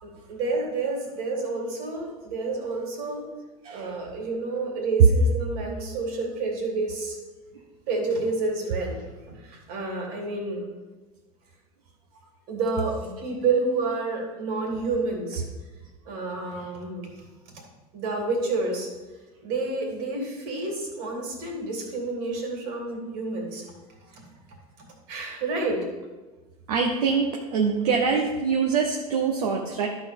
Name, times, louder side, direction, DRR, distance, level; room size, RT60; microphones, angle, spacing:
voice 1, 0.0-3.2 3.7-7.2 7.9-10.7 12.5-15.4 16.0-17.1 17.5-17.6 17.9-18.9 19.4-23.7 24.1-24.2 24.8-25.9, right 3 dB, 60° right, 1 dB, 3.0 m, -29 dB
voice 2, 3.6-4.0 26.7-29.9, right 5 dB, 80° right, 0 dB, 1.0 m, -24 dB
11.5 x 4.3 x 5.4 m, 1.3 s
hypercardioid pair, 90°, 19 cm